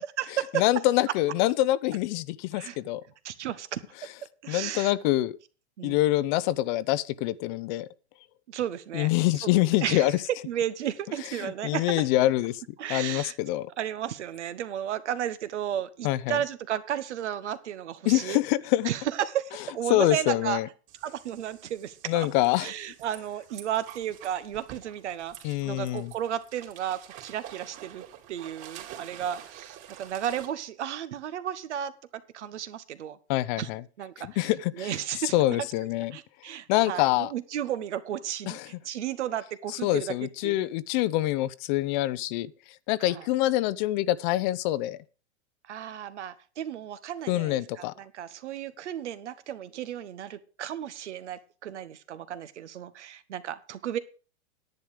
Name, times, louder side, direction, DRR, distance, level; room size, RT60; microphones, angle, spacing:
voice 1, 0.0-0.6 2.5-2.8 3.2-3.8 4.4-4.9 5.8-6.0 8.5-9.1 9.4-9.5 9.8-10.1 10.4-12.1 12.8-13.4 13.8-18.4 18.8-20.6 21.0-22.3 22.6-31.9 32.3-33.2 33.6-33.7 34.0-34.5 34.8-35.3 36.1-40.7 43.1-43.3 45.7-54.0, right 10 dB, 80° right, 1.3 m, -33 dB
voice 2, 0.5-3.0 4.5-5.4 5.8-7.9 8.9-10.1 11.4-12.6 12.9-13.7 16.0-16.4 18.1-18.9 19.9-20.7 22.1-22.7 25.4-26.1 33.3-33.8 34.2-34.9 35.3-36.1 36.7-37.3 38.5-38.7 39.8-42.5 42.9-45.0 47.3-47.9, left 16 dB, 45° left, 0.6 m, -25 dB
sound 1, 20.9-30.5, right 11 dB, 45° right, 2.9 m, -48 dB
10.5 x 9.7 x 4.9 m
hypercardioid pair, 130°, 34 cm